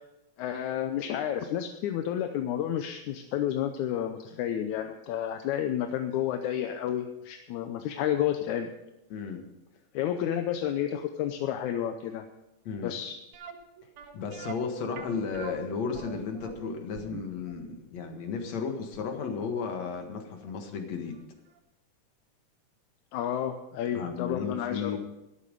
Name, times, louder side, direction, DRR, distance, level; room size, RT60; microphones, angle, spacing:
voice 1, 0.4-8.7 9.9-12.3 12.8-13.1 23.1-25.0, left 10 dB, 80° left, 6 dB, 2.2 m, -31 dB
voice 2, 9.1-9.5 12.6-12.9 14.1-21.2 23.9-25.0, left 5 dB, 65° left, 4 dB, 2.9 m, -34 dB
sound 1, 13.3-20.2 20.5-20.6 21.1-21.3 21.6-21.7, right 7 dB, 75° right, 2.7 m, -45 dB
13.0 x 12.5 x 5.3 m, 0.95 s
omnidirectional pair, 3.5 m